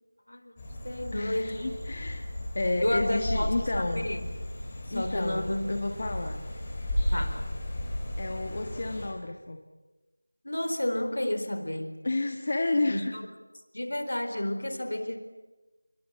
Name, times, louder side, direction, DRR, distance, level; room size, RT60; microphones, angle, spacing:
voice 1, 0.3-1.6 2.8-4.3 4.9-5.7 7.1-7.5 10.4-12.0 12.9-13.3 13.7-15.2, left 1 dB, 65° left, 8 dB, 4.4 m, -31 dB
sound 1, 0.6-9.1, left 1 dB, 10° left, 4.1 m, -34 dB
voice 2, 1.1-2.3 2.5-4.1 4.9-6.4 8.2-9.6 12.0-13.1, left 2 dB, 30° left, 4 dB, 1.3 m, -31 dB
27.0 x 22.5 x 8.7 m, 1.1 s
figure-of-eight pair, 180°, 0 cm